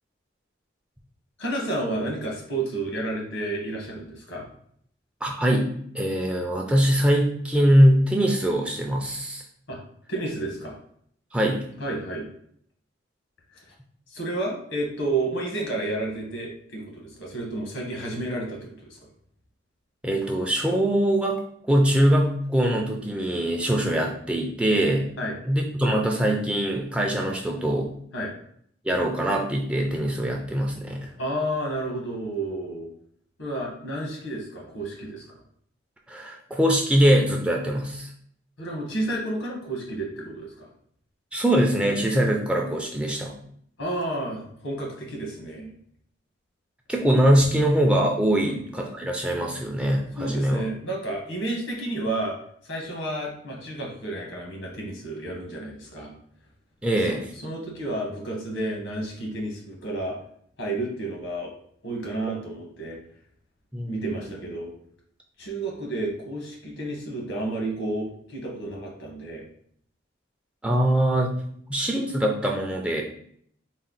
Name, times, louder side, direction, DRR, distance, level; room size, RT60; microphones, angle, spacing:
voice 1, 1.4-4.4 9.7-9.8 10.1-10.8 11.8-12.3 13.5-13.6 14.1-19.0 25.2-25.4 28.1-28.3 31.2-32.9 33.4-35.4 38.6-40.7 43.8-45.7 48.4-48.6 50.2-52.4 52.6-56.1 57.0-57.2 57.4-60.2 60.6-61.5 61.8-63.0 63.8-64.7 65.4-69.4, right 1 dB, 85° left, -1 dB, 1.2 m, -31 dB
voice 2, 5.2-9.4 11.3-11.6 20.0-21.4 21.7-25.1 25.5-27.9 28.8-31.1 36.1-38.1 41.3-43.4 46.9-50.6 56.8-57.3 63.7-64.1 70.6-71.4 71.7-73.0, right 1 dB, 5° right, 0 dB, 0.4 m, -22 dB
4.2 x 2.1 x 3.8 m, 0.65 s
head